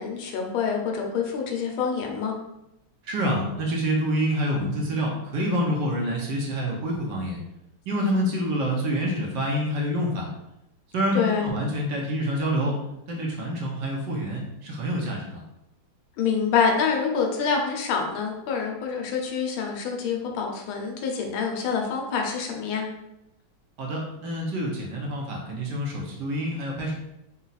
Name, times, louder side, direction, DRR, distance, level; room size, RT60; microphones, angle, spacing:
voice 1, 0.0-2.3 11.1-11.5 16.2-22.9, left 6 dB, 80° left, 1 dB, 1.5 m, -26 dB
voice 2, 3.0-7.4 7.9-10.3 10.9-12.8 13.1-15.4 23.8-26.9, equal, 65° right, -1 dB, 1.3 m, -27 dB
4.1 x 2.4 x 3.9 m, 0.88 s
omnidirectional pair, 2.3 m